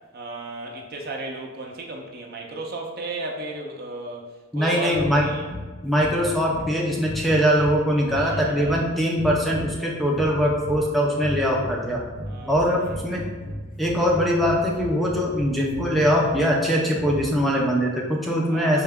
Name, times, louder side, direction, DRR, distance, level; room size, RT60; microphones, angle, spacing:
voice 1, 0.1-5.4 8.1-8.9 12.3-12.9 18.5-18.8, right 2 dB, 50° right, 1 dB, 0.6 m, -34 dB
voice 2, 4.5-5.3 5.8-12.0 12.5-13.2 13.8-18.8, equal, ahead, -3 dB, 0.5 m, -22 dB
sound 1, 4.9-17.6, equal, 45° left, 0.6 m, -36 dB
4.4 x 2.2 x 3.5 m, 1.3 s
head